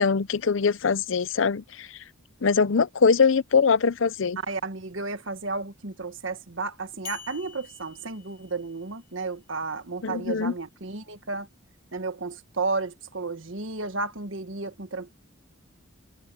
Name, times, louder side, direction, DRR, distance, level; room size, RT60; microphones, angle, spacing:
voice 1, 0.0-1.9 2.4-4.4 10.0-10.5, left 5 dB, 70° left, 0.6 m, -22 dB
voice 2, 4.5-11.5 11.9-15.1, right 3 dB, 70° right, 1.5 m, -33 dB
sound 1, 7.0-9.1, left 7 dB, 45° left, 5.8 m, -45 dB
head